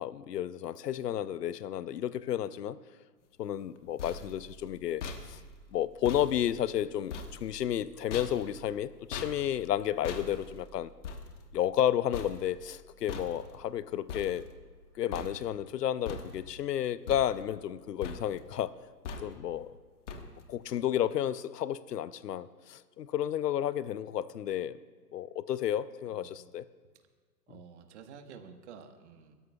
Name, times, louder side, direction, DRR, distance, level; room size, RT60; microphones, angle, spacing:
voice 1, 0.0-2.8 3.4-5.0 5.3-5.4 5.7-10.9 11.5-14.4 15.0-18.7 19.2-19.7 20.5-24.8 25.1-26.6, left 11 dB, 70° left, 16 dB, 0.7 m, -32 dB
sound 1, 3.6-14.8 15.1-15.7 16.1-16.7 17.1-17.8 18.0-18.5 19.0-19.6 20.1-20.6, left 4 dB, 45° left, 1.3 m, -43 dB
voice 2, 26.1-26.5 27.5-29.4, right 6 dB, 45° right, 6 dB, 1.4 m, -51 dB
27.0 x 13.5 x 2.3 m, 1.5 s
hypercardioid pair, 140°, 49 cm